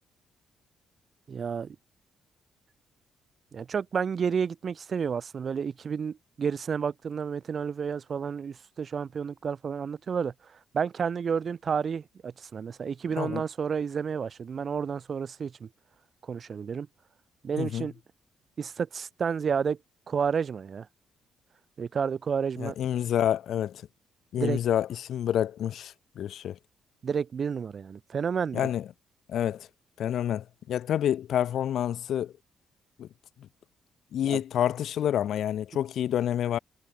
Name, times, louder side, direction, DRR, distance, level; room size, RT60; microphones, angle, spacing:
voice 1, 1.3-1.8 3.5-10.3 10.7-15.7 16.3-16.9 17.4-17.9 18.6-19.8 20.1-20.9 21.8-22.7 24.4-24.6 27.0-28.6 34.3-34.4, right 6 dB, 45° right, 1.0 m, -30 dB
voice 2, 22.6-23.8 24.3-26.6 28.5-28.9 29.3-29.7 30.0-32.3 33.0-33.1 34.1-36.6, left 10 dB, 70° left, 1.2 m, -28 dB
cardioid pair, 90°, 0 cm